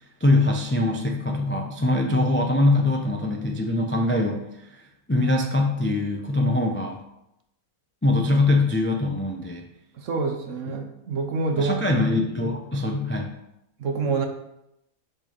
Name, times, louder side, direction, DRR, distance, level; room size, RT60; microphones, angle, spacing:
voice 1, 0.2-4.4 5.1-7.0 8.0-9.7 11.6-13.3, left 2 dB, 20° left, 2 dB, 0.3 m, -22 dB
voice 2, 10.0-11.8 13.8-14.3, right 4 dB, 60° right, 5 dB, 1.2 m, -26 dB
6.3 x 4.4 x 5.0 m, 0.85 s
omnidirectional pair, 1.5 m